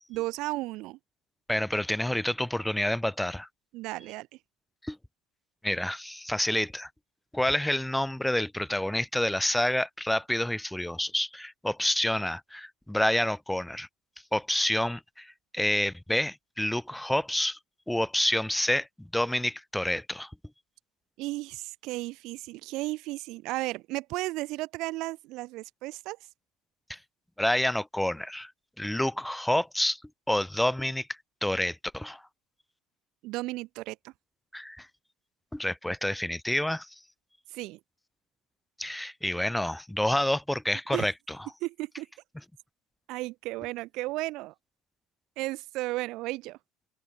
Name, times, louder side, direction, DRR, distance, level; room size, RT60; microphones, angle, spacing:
voice 1, 0.1-1.0 3.7-4.3 21.2-26.2 33.2-34.1 37.5-37.8 40.9-41.1 41.6-42.1 43.1-44.5 45.4-46.6, right 20 dB, 65° right, 2.7 m, -34 dB
voice 2, 1.5-3.5 4.8-5.0 5.6-6.9 7.3-13.9 14.3-17.6 17.9-20.3 26.9-27.0 27.4-28.5 28.8-30.0 30.3-31.1 31.4-32.2 34.5-34.9 35.5-36.9 38.8-41.4, left 1 dB, 5° left, 2.9 m, -28 dB
open air
supercardioid pair, 90°, 0 cm